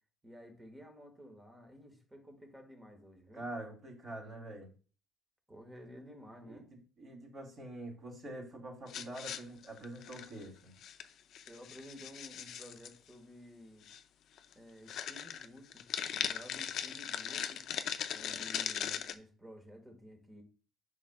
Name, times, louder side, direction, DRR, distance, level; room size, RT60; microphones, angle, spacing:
voice 1, 0.2-3.4 5.5-6.7 11.5-13.9 14.5-15.8 16.1-17.6 18.1-20.4, equal, 10° right, 4 dB, 1.6 m, -53 dB
voice 2, 3.3-4.7 6.5-10.7, right 1 dB, 30° right, -2 dB, 3.2 m, -45 dB
weird-smallplastic, 8.9-10.4 10.8-11.1 11.3-12.9 13.9-14.0 14.4-14.5 14.9-19.1, left 9 dB, 50° left, 0.5 m, -39 dB
10.5 x 5.8 x 2.3 m, 0.38 s
cardioid pair, 155°, 0 cm